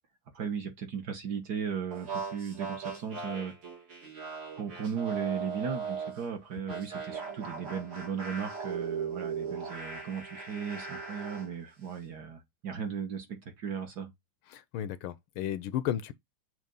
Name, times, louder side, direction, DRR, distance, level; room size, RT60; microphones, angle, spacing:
voice 1, 0.3-3.5 4.6-13.3 13.6-14.1, right 7 dB, 55° right, 1.5 m, -36 dB
sound 1, 1.9-6.2 6.7-11.5, right 5 dB, 75° right, 3.2 m, -38 dB
voice 2, 14.5-16.1, left 11 dB, 80° left, 1.4 m, -33 dB
6.4 x 2.8 x 5.3 m
omnidirectional pair, 2.4 m